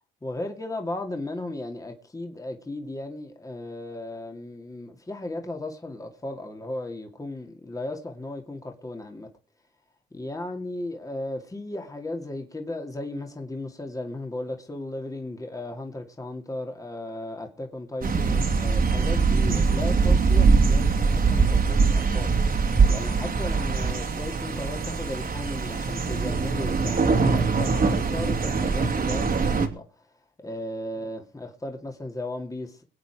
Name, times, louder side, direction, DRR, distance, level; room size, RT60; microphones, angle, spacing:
voice 1, 0.2-9.3 10.1-22.6 22.9-30.0 30.4-32.8, left 1 dB, 15° left, 2.5 m, -35 dB
sound 1, 18.0-29.7, right 4 dB, 45° right, 2.4 m, -22 dB
22.0 x 8.3 x 4.9 m
cardioid pair, 90°, 20 cm